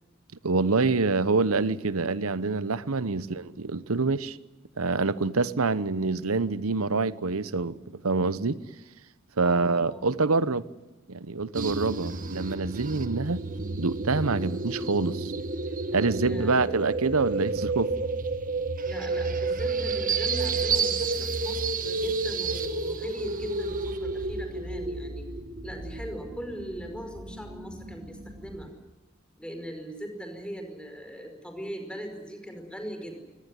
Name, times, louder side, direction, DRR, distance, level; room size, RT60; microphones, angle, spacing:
voice 1, 0.4-4.4 4.8-8.6 9.4-10.7 11.1-13.4 13.8-15.3 15.9-17.9, right 3 dB, 80° right, 1.0 m, -26 dB
voice 2, 9.4-10.1 12.0-12.3 16.1-16.6 18.8-25.3 25.6-28.7 29.4-33.2, equal, 5° left, 5.1 m, -39 dB
sound 1, 11.5-28.7, right 3 dB, 40° right, 1.5 m, -31 dB
23.5 x 18.5 x 9.8 m
head